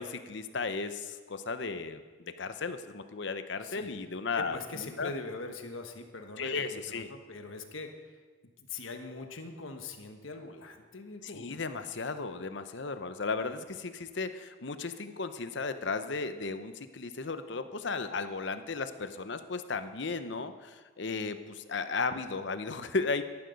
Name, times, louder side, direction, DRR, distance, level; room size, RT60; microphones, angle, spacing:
voice 1, 0.0-5.1 6.4-7.1 11.2-23.2, left 4 dB, 65° left, 10 dB, 0.8 m, -35 dB
voice 2, 4.4-7.9 8.7-11.7, left 3 dB, 90° left, 5 dB, 1.3 m, -42 dB
13.5 x 11.5 x 5.2 m, 1.4 s
head